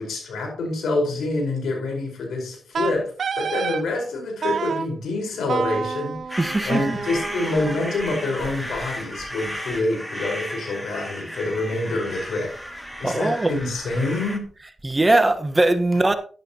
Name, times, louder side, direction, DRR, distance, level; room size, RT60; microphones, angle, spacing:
voice 1, 0.0-12.5 13.0-14.4, left 2 dB, 85° left, 4.7 m, -26 dB
Wind instrument woodwind instrument, 2.7-3.8 4.4-4.9 5.5-8.5, right 6 dB, 65° right, 0.6 m, -29 dB
sound 1, 6.3-14.4, equal, 5° left, 2.3 m, -34 dB
voice 2, 6.4-7.0 13.0-13.5 14.8-16.1, right 2 dB, 20° right, 1.3 m, -20 dB
12.0 x 11.0 x 2.9 m
cardioid pair, 75°, 0 cm